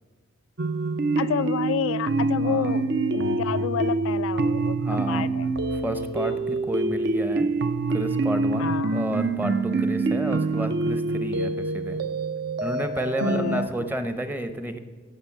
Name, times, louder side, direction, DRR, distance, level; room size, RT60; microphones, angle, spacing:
sound 1, 0.6-13.7, right 3 dB, 50° right, 0.7 m, -26 dB
voice 1, 1.2-5.6 8.6-9.0 13.2-13.9, left 8 dB, 70° left, 14 dB, 0.3 m, -30 dB
voice 2, 4.8-5.3 5.8-7.5 7.9-12.0 12.6-14.8, right 1 dB, 10° right, 9 dB, 0.7 m, -31 dB
16.5 x 6.7 x 7.2 m, 1.5 s
head